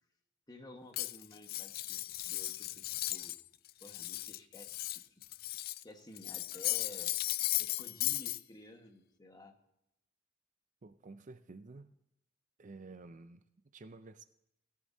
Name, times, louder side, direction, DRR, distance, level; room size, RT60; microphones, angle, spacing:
voice 1, 0.5-3.4 3.8-4.8 5.8-7.1 7.6-9.6, left 1 dB, 20° left, 3 dB, 1.5 m, -53 dB
Cutlery silverware, 0.9-3.4 3.7-5.8 6.2-8.4, left 16 dB, 50° left, 0.3 m, -36 dB
voice 2, 10.8-11.9 12.6-13.4 13.7-14.2, right 3 dB, 40° right, 11 dB, 0.5 m, -51 dB
17.5 x 11.0 x 2.7 m, 0.81 s
head